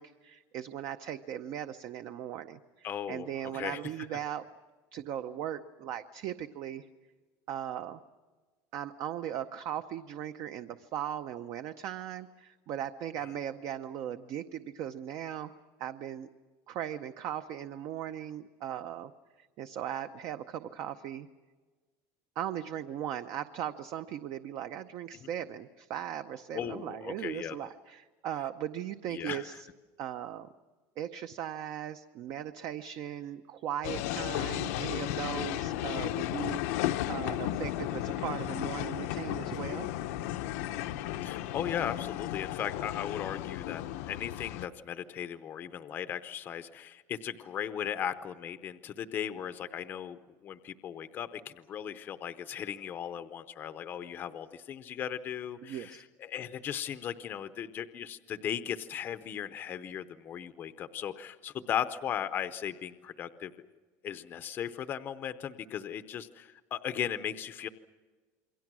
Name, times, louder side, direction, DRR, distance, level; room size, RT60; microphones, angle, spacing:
voice 1, 0.0-4.5 4.9-6.9 7.5-8.0 8.7-15.5 15.8-16.3 16.7-19.1 19.4-21.3 22.4-29.7 30.0-30.5 31.0-39.9 55.6-56.0, right 10 dB, 40° right, 9 dB, 0.7 m, -38 dB
voice 2, 2.8-3.8 13.2-13.3 25.2-25.3 26.5-27.6 29.1-29.6 41.2-63.5 64.0-67.7, left 9 dB, 25° left, 11 dB, 0.7 m, -37 dB
sound 1, 33.8-44.7, left 14 dB, 85° left, 1.0 m, -34 dB
28.0 x 23.0 x 6.2 m, 1.4 s
cardioid pair, 175°, 8 cm